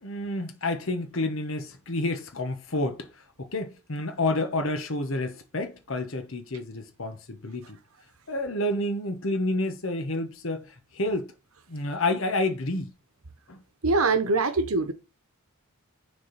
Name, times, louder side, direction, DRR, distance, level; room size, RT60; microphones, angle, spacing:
voice 1, 0.0-3.1 3.4-7.8 8.3-11.3 11.7-12.9 13.5-13.6, left 2 dB, 60° left, 1.1 m, -29 dB
voice 2, 13.8-14.9, right 3 dB, 70° right, 0.9 m, -23 dB
6.4 x 3.6 x 5.7 m
head